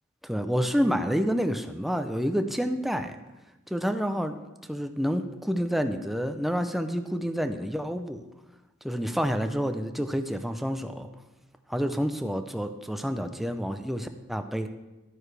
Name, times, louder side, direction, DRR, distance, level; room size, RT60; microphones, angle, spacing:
voice 1, 0.2-3.2 3.7-4.4 4.7-8.2 8.8-11.1 11.7-14.7, equal, ahead, 7 dB, 0.5 m, -28 dB
12.0 x 9.3 x 3.3 m, 1.1 s
head